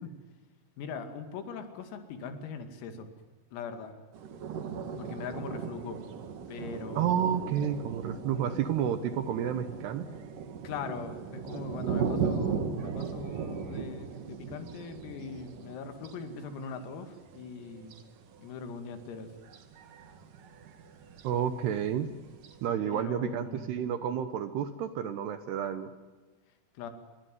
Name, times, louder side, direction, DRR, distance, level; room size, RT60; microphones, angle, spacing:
voice 1, 0.8-3.1 3.5-4.0 5.0-6.0 6.5-7.3 10.6-18.0 18.4-19.3 22.9-23.8 26.7-26.9, left 5 dB, 90° left, 8 dB, 5.1 m, -41 dB
sound 1, 4.1-22.7, right 6 dB, 55° right, 2.8 m, -38 dB
voice 2, 7.0-10.1 21.2-22.1 22.6-25.9, right 9 dB, 75° right, 11 dB, 2.6 m, -30 dB
26.0 x 22.0 x 9.4 m, 1.3 s
omnidirectional pair, 5.9 m